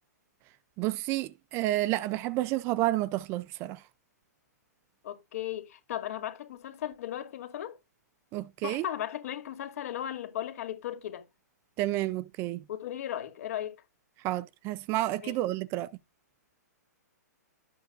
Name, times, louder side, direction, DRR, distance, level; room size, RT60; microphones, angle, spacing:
voice 1, 0.8-3.8 8.3-8.8 11.8-12.6 14.2-15.9, right 16 dB, 25° right, 0.4 m, -30 dB
voice 2, 5.0-7.8 8.6-11.2 12.7-13.8 15.2-15.4, left 11 dB, 60° left, 2.4 m, -36 dB
12.5 x 8.0 x 2.5 m
hypercardioid pair, 150°, 9 cm